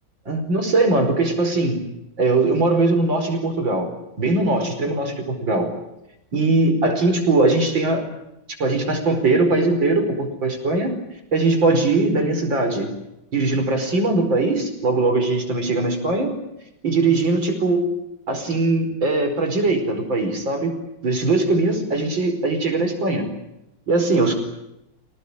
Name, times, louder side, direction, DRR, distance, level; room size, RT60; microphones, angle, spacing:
voice 1, 0.3-1.8 2.2-3.9 4.2-5.7 6.3-8.0 8.6-10.9 11.3-12.9 13.3-16.3 16.8-17.9 18.3-20.7 21.0-23.3 23.9-24.3, right 2 dB, 75° right, 6 dB, 5.6 m, -20 dB
26.5 x 18.5 x 9.9 m, 0.89 s
omnidirectional pair, 2.1 m